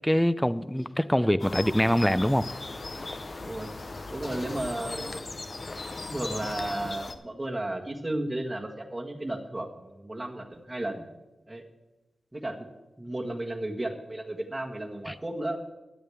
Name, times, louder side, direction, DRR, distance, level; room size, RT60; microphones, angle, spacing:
voice 1, 0.0-2.5 15.1-15.2, equal, 5° left, 15 dB, 0.6 m, -24 dB
sound 1, 1.4-7.1, left 3 dB, 50° left, 0.9 m, -37 dB
voice 2, 4.1-5.4 6.1-11.1 11.5-11.6 12.3-12.6 13.0-15.6, right 1 dB, 20° right, -2 dB, 1.6 m, -34 dB
17.0 x 11.0 x 3.5 m, 1.0 s
cardioid pair, 55°, 0 cm